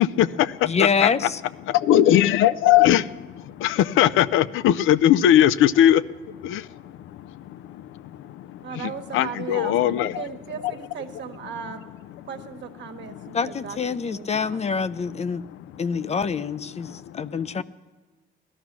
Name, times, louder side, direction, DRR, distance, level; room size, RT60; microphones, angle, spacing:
voice 1, 0.0-1.1 1.8-6.0 6.3-8.7 9.1-10.2 13.1-13.3 16.9-17.3, left 11 dB, 85° left, 0.5 m, -20 dB
voice 2, 0.6-1.4 13.3-15.4 15.8-17.6, left 5 dB, 35° left, 0.5 m, -26 dB
voice 3, 8.6-11.8 12.2-14.9, right 7 dB, 65° right, 1.4 m, -37 dB
17.0 x 12.0 x 6.1 m
cardioid pair, 90°, 20 cm